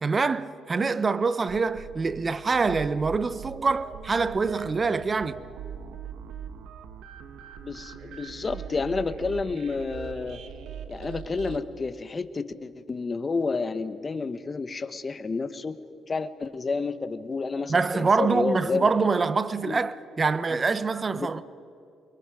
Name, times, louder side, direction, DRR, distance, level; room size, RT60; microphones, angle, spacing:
voice 1, 0.0-5.4 17.7-21.4, right 4 dB, 35° right, 0.9 m, -25 dB
sound 1, 1.5-11.6, right 7 dB, 80° right, 1.4 m, -41 dB
voice 2, 7.6-10.4 10.9-15.8 16.1-18.9 19.6-19.8 21.1-21.4, left 4 dB, 30° left, 1.4 m, -30 dB
29.0 x 22.5 x 5.1 m
cardioid pair, 90°, 0 cm